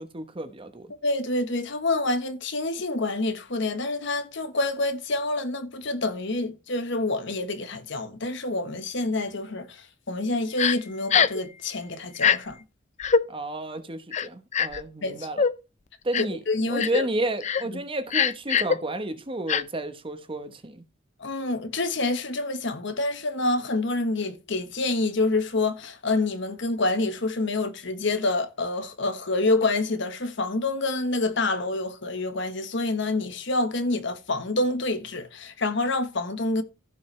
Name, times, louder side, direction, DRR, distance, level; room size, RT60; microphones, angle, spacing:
voice 1, 0.0-0.9 13.3-15.4 16.0-16.4 16.7-20.8, right 2 dB, 25° right, 1.0 m, -31 dB
voice 2, 1.0-12.6 15.0-15.3 16.5-17.1 17.7-17.8 21.2-36.6, left 2 dB, 65° left, 1.3 m, -27 dB
Crying sobbing, 10.6-10.8 11.1-11.4 12.1-12.4 13.0-13.2 14.1-14.8 15.4-15.5 16.1-16.4 16.8-17.0 17.4-17.6 18.1-18.8 19.5-19.6, left 6 dB, 35° left, 0.5 m, -22 dB
15.5 x 5.5 x 3.3 m
head